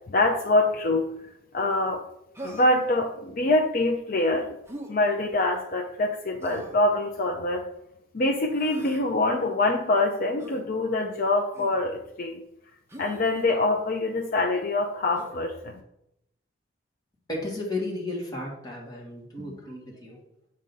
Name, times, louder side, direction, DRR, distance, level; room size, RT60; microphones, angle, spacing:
voice 1, 0.1-1.0 1.5-2.0 2.4-4.5 4.9-7.7 8.1-12.4 13.0-15.8, left 2 dB, 45° left, 1 dB, 0.5 m, -25 dB
Human voice, 2.3-2.9 4.6-4.9 6.4-6.8 8.5-9.0 10.4-10.6 11.5-11.8 12.9-13.5 15.1-15.4, right 1 dB, 15° right, 0.8 m, -42 dB
voice 2, 17.3-20.2, left 2 dB, 20° left, -3 dB, 1.4 m, -34 dB
7.5 x 2.7 x 5.3 m, 0.80 s
head